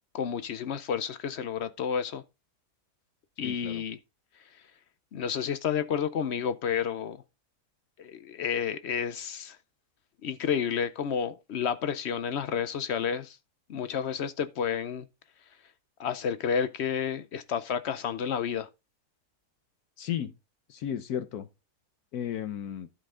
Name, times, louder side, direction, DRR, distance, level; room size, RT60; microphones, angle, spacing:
voice 1, 0.1-2.2 3.4-4.0 5.1-7.2 8.0-9.6 10.2-13.4 13.7-15.1 16.0-18.7, left 7 dB, 60° left, 0.7 m, -30 dB
voice 2, 3.4-3.8 20.0-20.3 20.7-21.5 22.1-22.9, left 10 dB, 75° left, 1.3 m, -34 dB
12.0 x 5.5 x 3.7 m
omnidirectional pair, 1.7 m